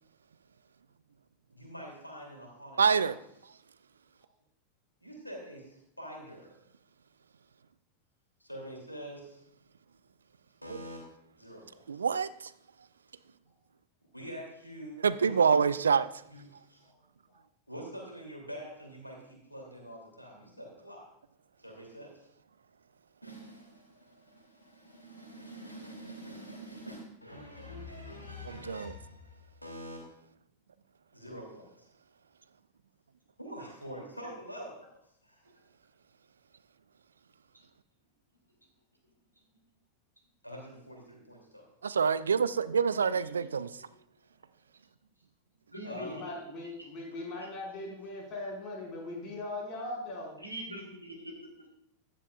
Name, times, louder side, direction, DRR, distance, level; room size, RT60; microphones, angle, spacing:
voice 1, 1.5-3.1 5.0-6.5 8.4-9.4 10.6-11.0 11.4-12.1 14.1-15.9 16.3-16.8 17.7-21.1 21.6-22.1 23.2-30.0 31.1-31.7 33.4-34.9 35.2-35.4 40.4-41.7 45.8-46.3, equal, 90° left, 0 dB, 2.9 m, -45 dB
voice 2, 2.8-3.1 11.9-12.3 15.0-16.1 28.5-28.9 41.8-43.7, right 6 dB, 70° right, 16 dB, 0.4 m, -26 dB
voice 3, 43.1-43.5 45.7-46.9 47.4-47.5 50.4-51.7, equal, 90° right, 0 dB, 2.7 m, -44 dB
voice 4, 45.8-50.3, left 2 dB, 35° left, -2 dB, 5.0 m, -40 dB
14.5 x 10.5 x 2.4 m, 0.72 s
figure-of-eight pair, 90°, 0 cm